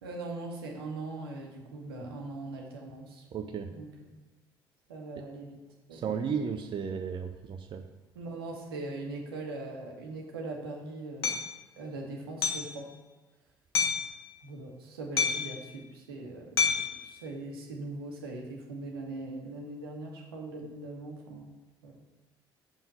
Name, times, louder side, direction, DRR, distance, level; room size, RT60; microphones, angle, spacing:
voice 1, 0.0-3.2 3.7-4.2 4.9-5.6 5.9-6.2 8.2-11.4 11.8-12.9 14.4-16.6 17.0-21.5 21.8-22.0, right 2 dB, 75° right, 0 dB, 1.6 m, -41 dB
voice 2, 3.3-3.7 5.9-7.8, right 6 dB, 40° right, 6 dB, 0.6 m, -34 dB
Hammer, 11.2-11.4 12.4-12.7 13.7-14.1 15.2-15.6 16.6-17.0, left 5 dB, 80° left, 1.0 m, -27 dB
7.4 x 5.7 x 5.7 m, 1.2 s
figure-of-eight pair, 50°, 13 cm